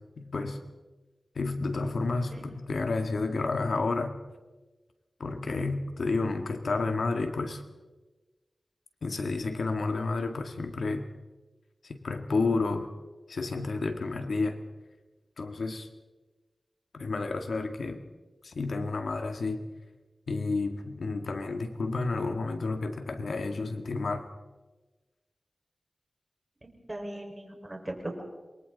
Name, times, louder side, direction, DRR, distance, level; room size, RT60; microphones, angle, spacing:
voice 1, 0.2-0.6 1.4-4.2 5.2-7.6 9.0-11.1 11.8-12.9 13.3-14.6 15.4-15.9 16.9-18.0 18.4-19.6 20.3-24.3, left 3 dB, 80° left, 6 dB, 1.9 m, -30 dB
voice 2, 26.6-28.2, right 1 dB, 25° right, 1 dB, 5.3 m, -39 dB
27.5 x 22.5 x 4.1 m, 1.2 s
wide cardioid pair, 60°, 0 cm